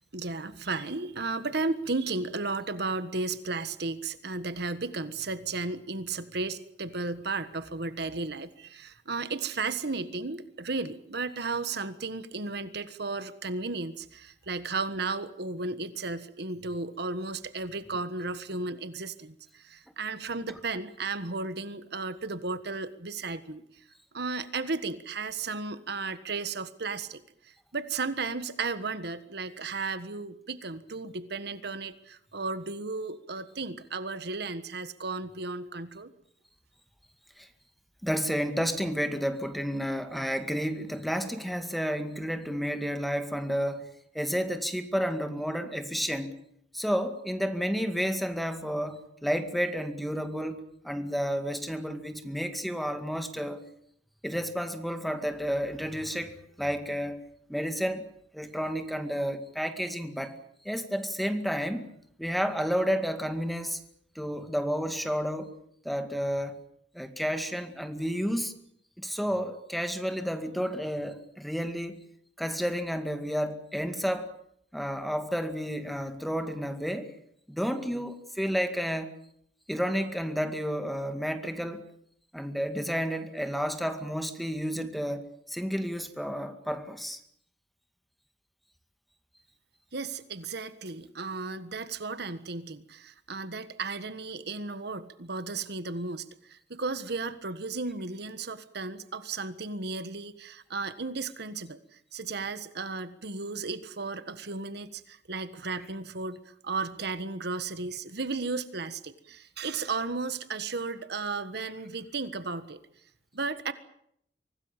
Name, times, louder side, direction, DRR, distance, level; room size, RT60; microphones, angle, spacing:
voice 1, 0.1-23.6 24.1-36.1 89.9-101.8 102.1-112.8 113.3-113.7, right 3 dB, 65° right, 1.5 m, -34 dB
voice 2, 38.0-43.9 44.1-46.3 46.7-53.6 54.2-57.2 57.5-58.0 58.3-60.4 60.6-61.9 62.2-63.8 64.2-65.6 65.8-66.6 66.9-68.5 69.0-72.0 72.4-74.3 74.7-77.1 77.5-79.1 79.7-81.9 82.3-87.2, equal, ahead, 2.1 m, -31 dB
25.0 x 18.0 x 9.0 m
head